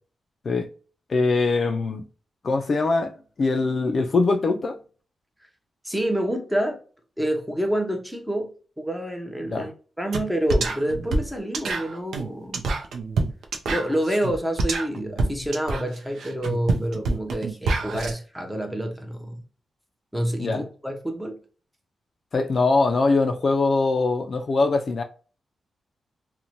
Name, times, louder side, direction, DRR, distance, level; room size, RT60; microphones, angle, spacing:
voice 1, 1.1-2.0 2.4-4.8 9.4-9.7 20.4-20.6 22.3-25.0, left 3 dB, 50° left, 0.3 m, -22 dB
voice 2, 5.8-6.8 7.2-8.5 8.8-9.7 10.0-12.6 13.7-19.4 20.1-21.4, right 1 dB, 5° right, 0.6 m, -27 dB
sound 1, 10.1-10.2 10.5-18.1, right 3 dB, 85° right, 0.4 m, -27 dB
2.5 x 2.1 x 2.8 m
cardioid pair, 105°, 0 cm